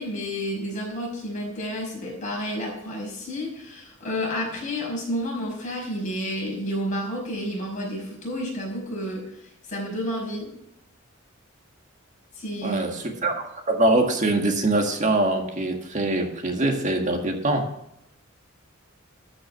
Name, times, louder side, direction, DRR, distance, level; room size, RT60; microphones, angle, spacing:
voice 1, 0.0-9.4 9.7-10.5 12.4-12.8, equal, 40° left, -2 dB, 5.4 m, -30 dB
voice 2, 12.6-17.7, right 2 dB, 40° right, 3 dB, 1.8 m, -23 dB
13.0 x 6.2 x 5.8 m, 0.81 s
head